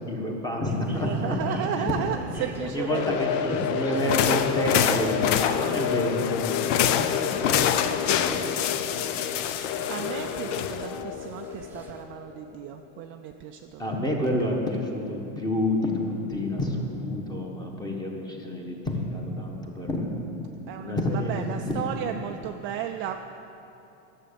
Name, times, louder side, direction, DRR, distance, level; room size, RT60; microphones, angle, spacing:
voice 1, 0.0-1.9 2.6-8.6 8.9-9.2 9.5-10.1 13.8-20.2 20.8-22.1, left 1 dB, 10° left, 0 dB, 1.4 m, -29 dB
sound 1, 0.7-12.0, right 1 dB, 5° right, 0.8 m, -45 dB
voice 2, 0.9-3.3 3.6-4.4 9.9-14.1 14.4-14.6 20.7-23.2, right 10 dB, 35° right, 4 dB, 0.4 m, -34 dB
sound 2, 2.9-13.0, left 10 dB, 45° left, 0.4 m, -31 dB
sound 3, 4.0-11.0, left 9 dB, 80° left, 0.7 m, -27 dB
11.5 x 7.5 x 6.9 m, 2.9 s
supercardioid pair, 145°, 37 cm